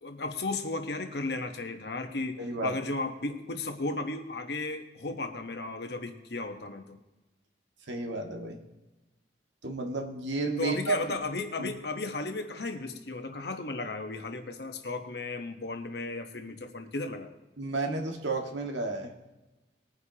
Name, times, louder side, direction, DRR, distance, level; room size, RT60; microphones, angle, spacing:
voice 1, 0.0-7.0 10.6-17.4, left 3 dB, 60° left, 6 dB, 1.2 m, -35 dB
voice 2, 2.4-2.7 7.9-8.6 9.6-11.0 11.6-11.7 17.6-19.1, right 3 dB, 85° right, 2 dB, 1.8 m, -32 dB
20.5 x 9.7 x 2.9 m, 1.1 s
head